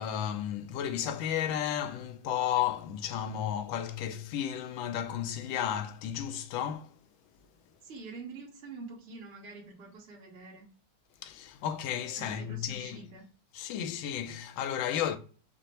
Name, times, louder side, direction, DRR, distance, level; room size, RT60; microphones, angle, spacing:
voice 1, 0.0-7.0 11.2-13.1 13.5-15.2, left 10 dB, 75° left, 1.3 m, -33 dB
voice 2, 7.8-10.7 12.2-13.3, right 4 dB, 40° right, 0.9 m, -46 dB
5.2 x 2.1 x 4.1 m
omnidirectional pair, 2.4 m